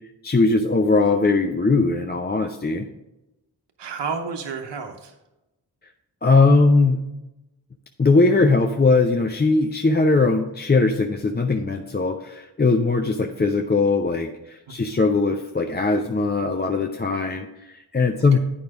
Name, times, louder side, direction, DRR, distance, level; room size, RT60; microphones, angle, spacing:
voice 1, 0.2-2.9 6.2-7.0 8.0-18.4, left 3 dB, 25° left, 5 dB, 0.6 m, -20 dB
voice 2, 3.8-5.2 14.7-15.0 18.1-18.4, right 5 dB, 80° right, 2 dB, 0.9 m, -32 dB
8.6 x 5.4 x 4.7 m, 0.96 s
cardioid pair, 40°, 41 cm